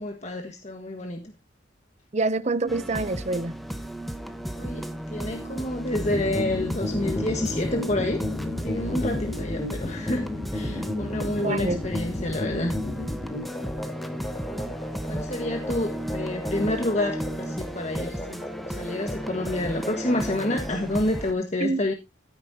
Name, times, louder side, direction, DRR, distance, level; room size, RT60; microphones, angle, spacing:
voice 1, 0.0-1.3 4.5-8.3 8.6-12.8 15.1-21.9, left 1 dB, 35° left, 1.4 m, -29 dB
voice 2, 2.1-3.6 11.4-11.8 21.6-21.9, right 3 dB, 35° right, 0.7 m, -26 dB
sound 1, 2.7-21.3, equal, ahead, 0.9 m, -34 dB
sound 2, 6.0-20.8, left 1 dB, 20° left, 3.6 m, -33 dB
14.0 x 9.5 x 2.8 m
head